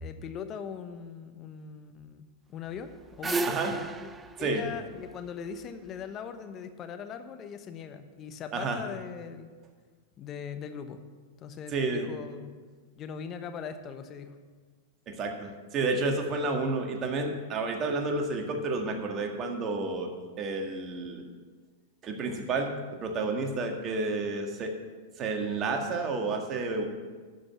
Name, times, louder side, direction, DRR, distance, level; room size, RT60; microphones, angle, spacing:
voice 1, 0.0-2.9 3.2-4.1 4.4-9.5 10.2-11.0 11.4-12.6 13.0-14.4, left 7 dB, 35° left, 8 dB, 1.0 m, -40 dB
sound 1, 2.7-5.9, right 3 dB, 15° right, 0.5 m, -34 dB
voice 2, 11.7-12.1 15.1-21.2 22.0-24.7 25.2-26.9, right 3 dB, 35° right, 3 dB, 1.7 m, -30 dB
12.5 x 5.2 x 7.3 m, 1.5 s
hypercardioid pair, 115°, 0 cm